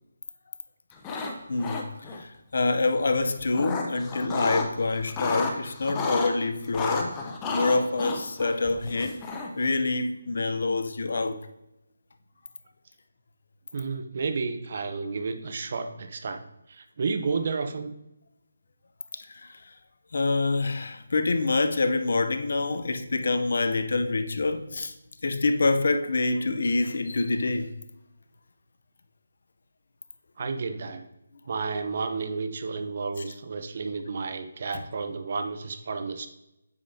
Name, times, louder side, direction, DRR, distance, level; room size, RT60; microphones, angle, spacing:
sound 1, 0.9-1.3 1.6-2.2 3.2-4.7 5.0-6.3 6.7-9.6, left 4 dB, 15° left, 0.7 m, -31 dB
voice 1, 1.5-1.8 2.2-7.1 7.5-9.2 9.5-11.4 19.4-19.5 20.1-24.9 25.2-27.7, left 3 dB, 65° left, 0.6 m, -26 dB
voice 2, 13.7-17.9 30.4-31.0 31.5-36.3, right 4 dB, 45° right, 0.7 m, -31 dB
8.4 x 5.0 x 2.7 m
figure-of-eight pair, 160°, 0 cm